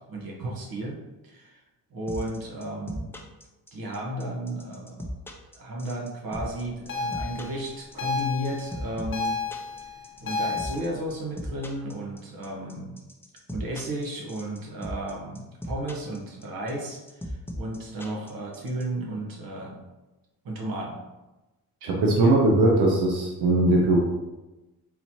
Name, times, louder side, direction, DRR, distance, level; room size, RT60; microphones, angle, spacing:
voice 1, 0.1-1.0 1.2-1.6 1.9-3.1 3.7-5.1 5.5-9.4 10.2-13.0 13.5-19.8 20.4-21.0 22.2-22.3, right 1 dB, 65° right, -2 dB, 1.2 m, -34 dB
sound 1, 2.1-18.8, equal, 5° left, 0.5 m, -36 dB
sound 2, 6.9-10.8, left 4 dB, 35° left, 0.9 m, -31 dB
voice 2, 21.8-24.0, right 2 dB, 90° right, -1 dB, 0.7 m, -20 dB
4.0 x 2.8 x 2.8 m, 1.1 s
cardioid pair, 75°, 37 cm